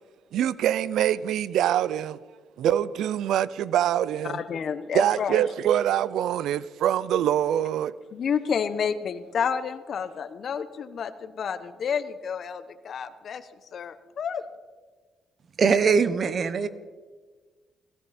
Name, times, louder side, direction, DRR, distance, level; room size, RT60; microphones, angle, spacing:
voice 1, 0.3-2.2 2.6-4.4 4.9-7.9, right 11 dB, 80° right, 0.4 m, -24 dB
voice 2, 4.2-5.4 8.1-14.4, left 7 dB, 55° left, 1.0 m, -30 dB
voice 3, 15.6-16.7, right 5 dB, 50° right, 1.0 m, -21 dB
17.5 x 16.5 x 4.3 m
cardioid pair, 90°, 0 cm